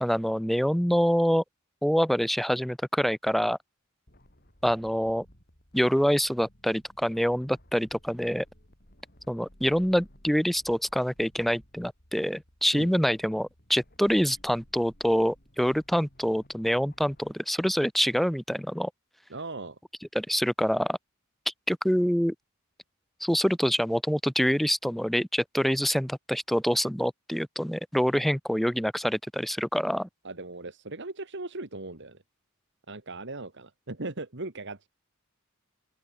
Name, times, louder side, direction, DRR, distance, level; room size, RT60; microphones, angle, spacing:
voice 1, 0.0-1.4 1.8-3.6 4.6-5.3 5.7-8.4 9.3-18.9 20.1-21.0 21.5-22.3 23.2-30.1, equal, ahead, 0.4 m, -26 dB
sound 1, 4.1-17.3, equal, 45° left, 7.6 m, -58 dB
voice 2, 19.3-19.8 30.2-32.2 32.9-34.9, right 2 dB, 55° right, 2.2 m, -38 dB
open air
head